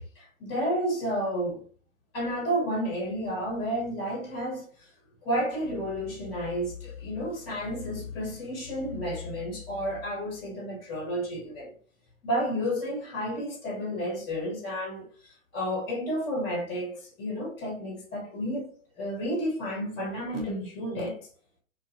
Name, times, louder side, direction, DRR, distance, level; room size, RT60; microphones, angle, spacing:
voice 1, 0.0-1.6 2.1-4.6 5.2-11.7 12.2-18.7 19.0-21.2, equal, 15° left, 0.6 m, -31 dB
2.4 x 2.2 x 2.7 m
figure-of-eight pair, 120°, 41 cm